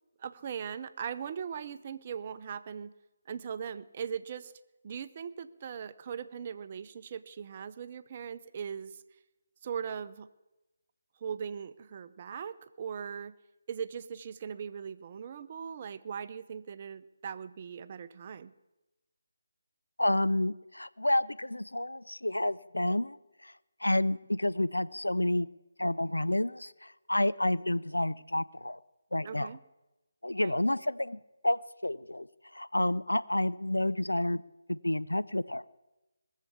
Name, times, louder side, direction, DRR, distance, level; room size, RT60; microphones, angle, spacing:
voice 1, 0.2-2.9 3.3-4.5 4.8-9.0 9.6-10.3 11.2-13.3 13.7-18.5 29.2-29.6 30.4-30.5, right 7 dB, 35° right, 13 dB, 0.6 m, -39 dB
voice 2, 20.0-23.2 23.4-23.5 23.8-25.5 25.8-28.8 29.1-29.5 30.2-34.4 34.7-35.7, left 1 dB, 85° left, 15 dB, 0.5 m, -30 dB
20.0 x 7.5 x 8.3 m, 1.0 s
figure-of-eight pair, 150°, 0 cm